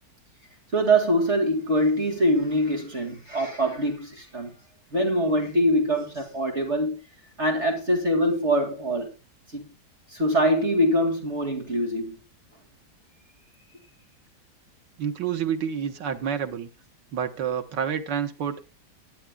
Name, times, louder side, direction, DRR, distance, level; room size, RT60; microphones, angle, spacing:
voice 1, 0.7-4.5 4.9-7.0 7.4-9.1 9.5-9.7 10.1-12.2, equal, 40° right, 2.5 m, -23 dB
voice 2, 15.0-16.7 17.1-18.6, right 8 dB, 85° right, 1.8 m, -28 dB
20.0 x 11.0 x 2.3 m
omnidirectional pair, 1.9 m